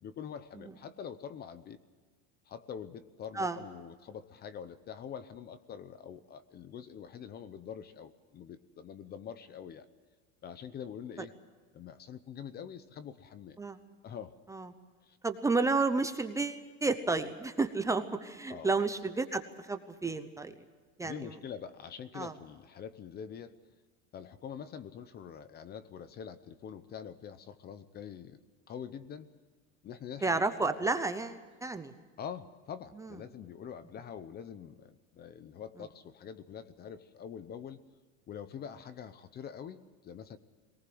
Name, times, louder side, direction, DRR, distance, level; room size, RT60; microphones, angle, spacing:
voice 1, 0.0-1.8 2.5-9.9 10.4-11.3 11.7-13.6 14.0-14.3 15.0-15.2 18.5-18.8 21.0-23.6 24.1-28.4 28.7-29.3 29.8-30.7 32.2-37.8 38.3-40.4, left 8 dB, 25° left, 14 dB, 0.8 m, -45 dB
voice 2, 15.2-20.5 21.0-21.3 22.1-22.3 30.2-31.9 33.0-33.1, right 3 dB, 10° right, 8 dB, 0.8 m, -31 dB
21.5 x 19.0 x 7.8 m, 1.4 s
cardioid pair, 160°, 37 cm